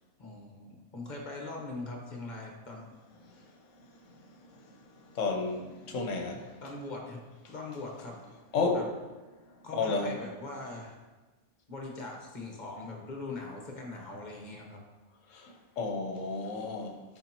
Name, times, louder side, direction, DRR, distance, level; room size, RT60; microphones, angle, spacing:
voice 1, 0.2-2.9 3.3-3.5 6.6-7.2 7.5-8.2 8.6-8.9 9.6-10.9 11.7-14.8, left 2 dB, 35° left, 0 dB, 1.1 m, -41 dB
voice 2, 5.0-6.6 8.5-8.9 9.7-10.2 15.3-17.0, left 3 dB, 65° left, 3 dB, 1.2 m, -32 dB
10.0 x 4.2 x 2.9 m, 1.2 s
omnidirectional pair, 1.5 m